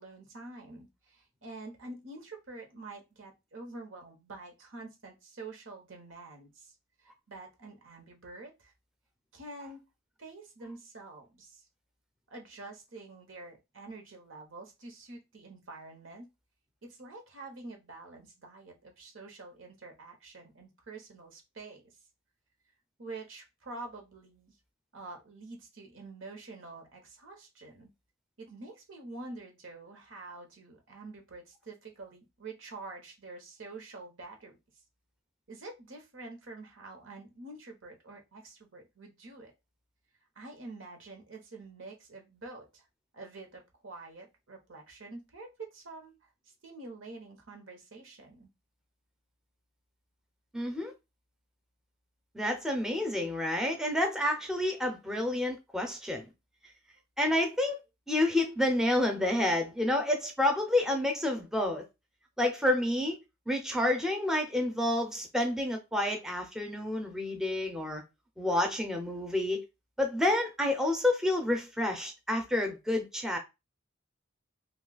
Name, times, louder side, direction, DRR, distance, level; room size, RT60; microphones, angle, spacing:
voice 1, 0.0-6.7 7.0-8.7 9.3-9.8 10.2-11.6 12.3-16.3 16.8-21.9 23.0-24.6 24.9-27.9 28.4-34.6 35.5-39.5 40.4-42.9 43.1-48.5, right 3 dB, 75° right, 1.0 m, -47 dB
voice 2, 50.5-50.9 52.3-56.3 57.2-57.8 58.1-61.8 62.4-63.2 63.5-68.0 68.4-69.6 70.0-73.4, left 1 dB, 5° right, 0.5 m, -29 dB
2.7 x 2.3 x 3.8 m
head